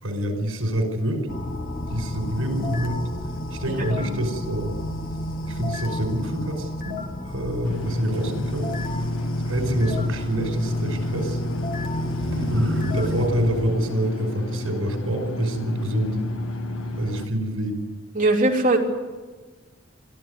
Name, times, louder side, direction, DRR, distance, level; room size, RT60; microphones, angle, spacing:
voice 1, 0.0-1.3 1.9-3.1 3.5-4.7 5.5-7.0 7.3-8.7 9.5-11.4 12.5-16.2 17.0-17.8, right 1 dB, 80° right, 4 dB, 5.3 m, -27 dB
sound 1, 1.3-13.3, equal, 45° left, 1.9 m, -31 dB
voice 2, 3.7-4.0 18.1-18.8, right 2 dB, 40° right, -1 dB, 3.3 m, -21 dB
sound 2, 7.6-17.3, left 1 dB, 75° left, 1.5 m, -30 dB
Motor vehicle (road), 8.1-8.2 9.4-13.7, equal, 65° right, 5.0 m, -33 dB
22.5 x 14.0 x 9.6 m, 1.3 s
head